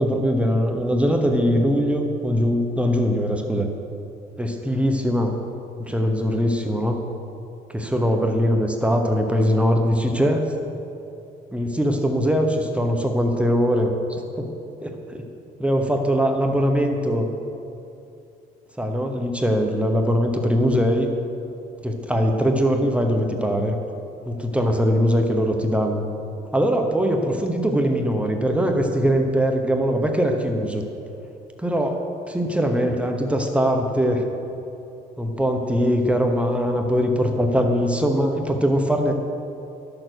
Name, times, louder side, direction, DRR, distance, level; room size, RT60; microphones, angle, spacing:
voice 1, 0.0-3.7 4.4-5.3 5.8-7.0 7.7-10.5 11.5-14.5 14.8-15.3 15.6-17.3 18.8-21.1 21.8-23.8 24.2-26.0 26.5-30.8 31.6-34.2 35.2-39.1, equal, 5° right, 3 dB, 0.9 m, -21 dB
12.0 x 6.8 x 6.3 m, 2.8 s
cardioid pair, 110°, 17 cm